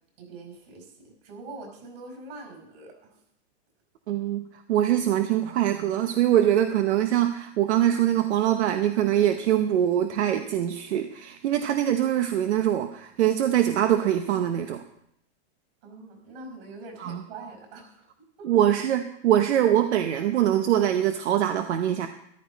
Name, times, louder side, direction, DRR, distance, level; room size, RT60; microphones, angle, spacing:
voice 1, 0.2-3.2 15.8-18.1 18.4-18.7, right 3 dB, 60° right, 3 dB, 5.1 m, -43 dB
voice 2, 4.1-14.8 17.0-17.2 18.4-22.1, right 11 dB, 85° right, 7 dB, 1.0 m, -23 dB
14.0 x 11.5 x 4.1 m, 0.75 s
supercardioid pair, 165°, 33 cm